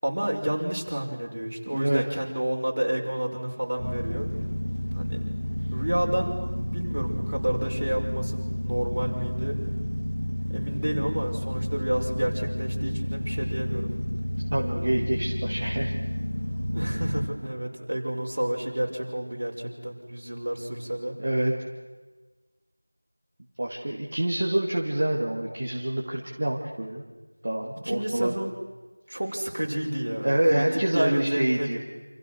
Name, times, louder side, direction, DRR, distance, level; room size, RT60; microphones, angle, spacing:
voice 1, 0.0-4.3 4.9-5.2 5.7-6.4 6.7-9.6 10.5-13.9 16.7-21.2 27.8-28.5 29.1-30.7 30.9-31.8, right 1 dB, 50° right, 0 dB, 6.0 m, -30 dB
voice 2, 1.7-2.0 3.4-3.5 14.5-15.9 21.2-21.5 23.6-27.0 27.4-28.3 30.2-31.8, right 1 dB, 30° right, -2 dB, 2.3 m, -26 dB
sound 1, 3.8-17.3, equal, 50° left, 3.4 m, -30 dB
29.5 x 27.5 x 6.5 m, 1.2 s
figure-of-eight pair, 175°, 0 cm